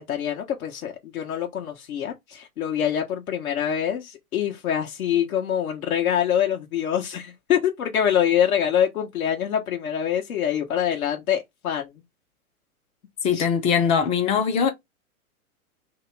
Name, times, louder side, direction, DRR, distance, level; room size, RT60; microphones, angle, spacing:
voice 1, 0.0-12.0 13.3-13.4, left 9 dB, 75° left, 1.2 m, -25 dB
voice 2, 13.2-14.7, left 7 dB, 15° left, 0.4 m, -21 dB
3.0 x 2.9 x 4.5 m
hypercardioid pair, 125°, 44 cm